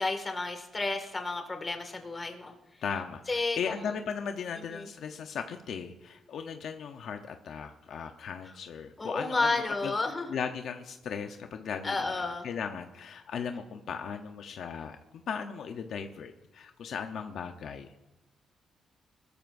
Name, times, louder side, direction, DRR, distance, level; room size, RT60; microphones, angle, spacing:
voice 1, 0.0-2.5 3.3-3.6 4.7-4.8 9.0-10.4 11.8-12.4, left 3 dB, 25° left, 5 dB, 2.0 m, -31 dB
voice 2, 2.8-9.9 10.3-15.0 15.3-18.0, left 6 dB, 70° left, 5 dB, 0.8 m, -37 dB
21.0 x 13.5 x 2.6 m, 1.0 s
cardioid pair, 110°, 0 cm